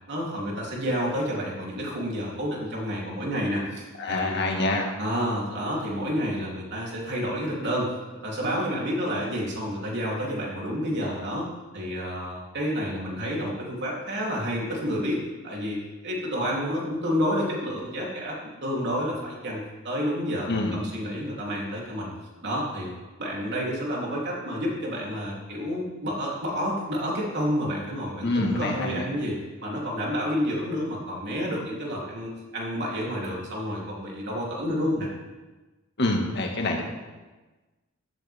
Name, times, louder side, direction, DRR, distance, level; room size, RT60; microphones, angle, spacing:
voice 1, 0.1-4.3 5.0-7.9 8.2-11.5 11.7-15.2 15.4-22.1 22.4-22.9 23.2-35.1, equal, 55° right, -4 dB, 3.5 m, -29 dB
voice 2, 4.0-4.9 20.5-20.9 28.2-29.1 36.0-36.8, left 2 dB, 50° left, 1 dB, 2.1 m, -26 dB
15.0 x 13.5 x 3.7 m, 1.2 s
head